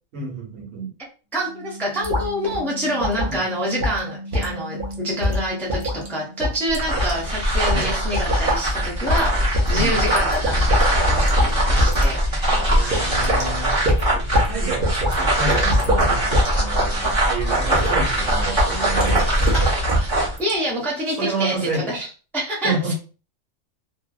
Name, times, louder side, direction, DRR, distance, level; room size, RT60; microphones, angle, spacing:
voice 1, 0.1-0.9 3.3-3.5 7.7-7.9 9.7-10.2 12.5-13.8 14.1-19.5 21.2-21.9 22.6-22.9, right 3 dB, 75° right, 0 dB, 1.2 m, -29 dB
voice 2, 1.3-13.1 13.7-13.8 19.5-22.1 22.3-22.9, equal, ahead, -4 dB, 0.5 m, -27 dB
sound 1, 1.4-6.7 7.0-13.3, right 1 dB, 60° left, 0.6 m, -40 dB
sound 2, 2.0-2.3 2.5-2.6 3.0-3.4 3.8-4.0 4.3-4.5 4.8-4.9 5.2-6.1 6.4-7.1 7.7-7.8 8.1-8.6 9.1-9.3 9.5-10.9 11.2-11.5 11.8-12.1 12.4-12.5 12.9-13.5 13.9-14.5 14.8-15.1 15.5-16.5 16.8-17.1 17.7-18.0 19.0-20.1 20.4-20.5, equal, 50° right, 0.7 m, -22 dB
sound 3, 6.7-20.4, right 1 dB, 25° right, 0.9 m, -21 dB
2.6 x 2.0 x 2.3 m, 0.35 s
omnidirectional pair, 1.4 m